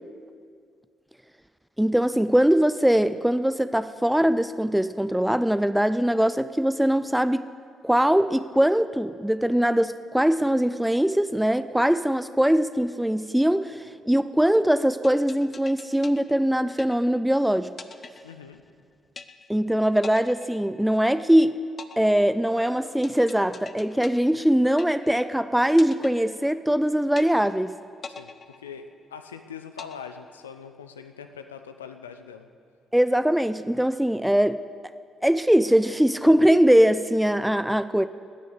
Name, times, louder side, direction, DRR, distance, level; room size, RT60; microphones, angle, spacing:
voice 1, 1.8-7.4 7.8-17.7 19.5-21.6 22.0-27.7 32.9-34.6 35.2-38.1, equal, 5° right, 13 dB, 0.5 m, -21 dB
sound 1, 15.0-17.3 17.8-18.8 19.2-19.7 20.0-21.3 21.8-25.3 25.8-26.8 27.2-27.7 28.0-29.3 29.8-30.8, left 5 dB, 40° left, 0.7 m, -43 dB
voice 2, 18.2-18.6 28.1-32.5, left 7 dB, 85° left, 8 dB, 0.6 m, -42 dB
16.5 x 6.4 x 8.2 m, 2.1 s
figure-of-eight pair, 45°, 0 cm